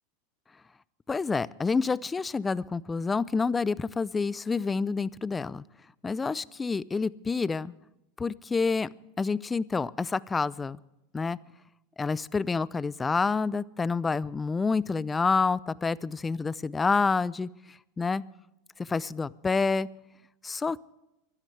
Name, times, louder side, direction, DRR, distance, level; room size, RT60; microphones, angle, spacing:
voice 1, 1.1-5.6 6.0-7.7 8.2-8.9 9.2-10.8 11.1-11.4 12.0-18.2 18.8-19.9 20.4-20.9, left 4 dB, 15° left, 21 dB, 0.5 m, -28 dB
24.0 x 13.0 x 3.3 m, 0.91 s
hypercardioid pair, 100°, 0 cm